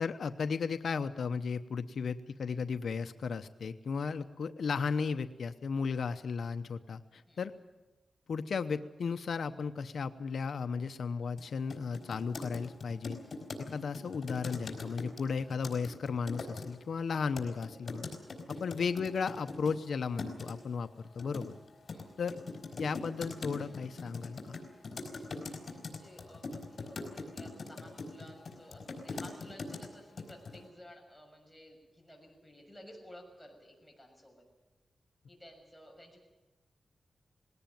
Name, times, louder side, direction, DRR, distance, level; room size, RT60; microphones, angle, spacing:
voice 1, 0.0-7.5 8.3-13.2 13.6-18.1 18.6-20.9 21.1-21.5 22.2-22.4 22.8-24.6, left 5 dB, 75° left, 10 dB, 0.8 m, -35 dB
sound 1, 11.4-11.5 11.7-16.7 17.4-19.8 20.2-20.5 21.2-29.9 30.2-30.6, left 3 dB, 55° left, 4.3 m, -41 dB
voice 2, 25.5-34.4 35.3-36.2, equal, ahead, 3 dB, 6.5 m, -54 dB
20.5 x 17.5 x 9.3 m, 1.1 s
wide cardioid pair, 95°, 0 cm